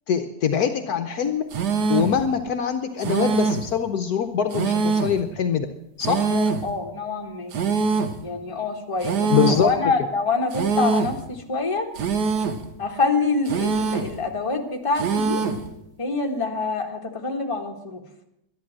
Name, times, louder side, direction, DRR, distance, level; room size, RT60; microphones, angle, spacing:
voice 1, 0.1-1.4 1.9-5.7 6.0-6.3 9.3-9.7, left 7 dB, 65° left, 8 dB, 1.2 m, -23 dB
sound 1, 1.5-2.2 3.0-3.7 4.5-5.2 6.0-6.7 7.5-8.2 9.0-9.7 10.5-11.2 12.0-12.7 13.5-14.2 15.0-15.7, right 5 dB, 70° right, 1.6 m, -23 dB
voice 2, 6.3-7.5 8.2-11.9 12.8-15.4 16.0-18.0, left 4 dB, 20° left, 2 dB, 1.5 m, -26 dB
12.0 x 11.0 x 7.5 m, 0.81 s
omnidirectional pair, 1.9 m